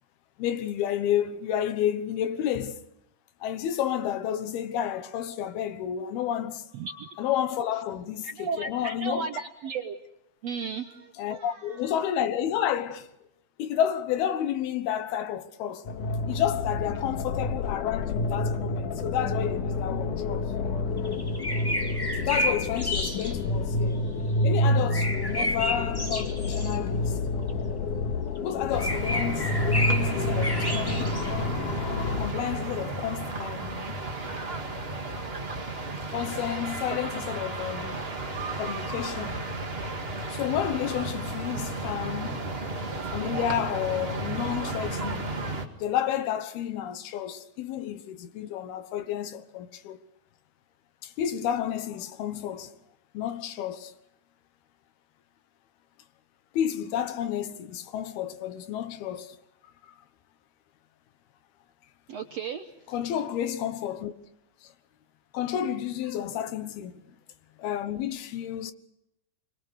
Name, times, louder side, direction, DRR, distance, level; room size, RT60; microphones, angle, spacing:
voice 1, 0.4-2.8 3.4-9.3 11.2-13.1 13.6-15.9 16.3-20.5 22.2-24.0 24.4-27.2 28.4-31.2 32.2-34.0 36.1-37.9 38.5-39.4 40.3-42.5 43.1-45.3 45.8-50.0 51.0-52.7 53.1-53.9 56.5-59.4 62.9-64.1 65.3-67.0 67.6-68.7, left 10 dB, 85° left, 3.2 m, -31 dB
voice 2, 6.7-7.1 8.2-10.0 10.4-11.8 25.4-25.5 62.1-62.7, right 5 dB, 80° right, 1.4 m, -35 dB
sound 1, 15.9-32.3, left 2 dB, 60° left, 3.0 m, -29 dB
sound 2, 21.0-23.3 24.9-26.8 27.5-27.6 28.3-28.4 28.8-31.3, equal, 10° left, 1.3 m, -31 dB
sound 3, 28.7-45.6, right 2 dB, 25° right, 1.2 m, -33 dB
25.5 x 23.5 x 6.5 m
omnidirectional pair, 4.3 m